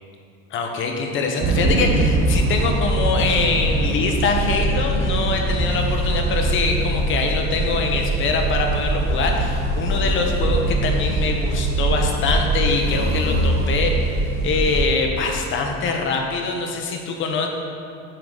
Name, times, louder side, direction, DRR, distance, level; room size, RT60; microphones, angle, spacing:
voice 1, 0.5-17.5, left 4 dB, 40° left, 2 dB, 0.8 m, -24 dB
sound 1, 1.4-14.8, right 2 dB, 35° right, 0.5 m, -22 dB
sound 2, 8.6-13.5, equal, 85° left, 1.5 m, -33 dB
7.6 x 3.7 x 6.4 m, 2.4 s
cardioid pair, 165°, 31 cm